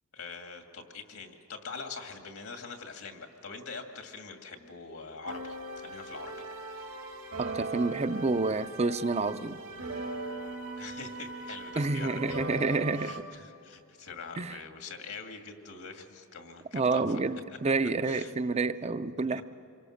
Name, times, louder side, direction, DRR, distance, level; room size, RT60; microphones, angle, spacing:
voice 1, 0.1-6.5 6.7-6.9 10.8-17.2 17.6-17.7 18.0-18.3 19.3-19.4, left 4 dB, 75° left, 4 dB, 2.2 m, -44 dB
sound 1, 5.3-13.2, right 2 dB, 80° right, 2.7 m, -39 dB
voice 2, 7.4-9.6 11.8-13.3 14.4-14.6 16.7-19.4, right 3 dB, 30° right, 12 dB, 0.6 m, -29 dB
27.5 x 23.5 x 6.5 m, 2.7 s
head